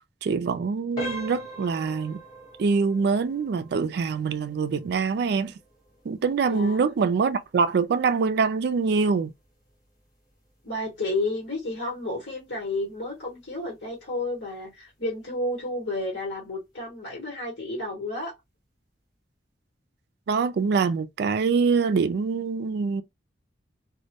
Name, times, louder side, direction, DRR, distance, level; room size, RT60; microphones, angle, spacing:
voice 1, 0.2-2.2 2.6-5.5 6.1-9.3 20.3-23.0, right 5 dB, 60° right, 0.3 m, -24 dB
sound 1, 0.9-11.6 12.0-12.2 12.8-12.9 13.4-13.5, right 1 dB, 20° left, 1.0 m, -43 dB
voice 2, 6.5-6.8 10.6-18.3, left 2 dB, 75° left, 1.1 m, -31 dB
2.1 x 2.1 x 2.7 m
head